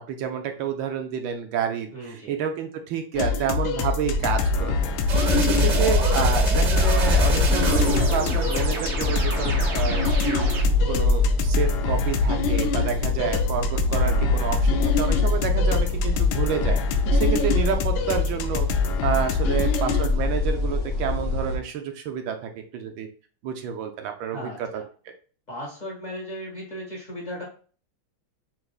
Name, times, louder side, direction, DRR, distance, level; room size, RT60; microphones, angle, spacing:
voice 1, 0.1-4.9 5.3-16.8 17.1-18.7 19.0-23.1 23.4-24.8, right 8 dB, 80° right, 5 dB, 1.3 m, -29 dB
voice 2, 1.9-2.3 5.5-5.8 13.9-14.3 19.5-19.6 24.3-24.8 25.5-27.4, equal, 20° left, -4 dB, 1.7 m, -37 dB
sound 1, 3.1-20.1, left 5 dB, 75° left, 1.3 m, -26 dB
sound 2, 4.0-21.6, left 2 dB, 55° left, 1.3 m, -26 dB
sound 3, 5.1-10.6, right 1 dB, 55° right, 0.8 m, -25 dB
5.9 x 2.9 x 2.3 m, 0.39 s
omnidirectional pair, 2.1 m